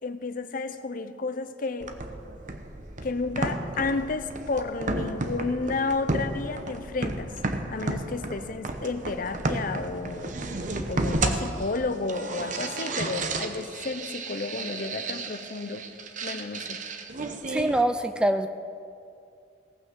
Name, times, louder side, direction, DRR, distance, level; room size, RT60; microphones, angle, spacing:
voice 1, 0.0-1.9 3.0-7.3 7.7-10.4 10.9-15.9 16.2-16.8, left 3 dB, 45° left, 11 dB, 0.6 m, -31 dB
sound 1, 1.8-17.8, right 2 dB, 45° right, 0.9 m, -32 dB
voice 2, 17.5-18.5, right 1 dB, 5° right, 9 dB, 0.3 m, -24 dB
17.5 x 6.3 x 7.5 m, 2.5 s
head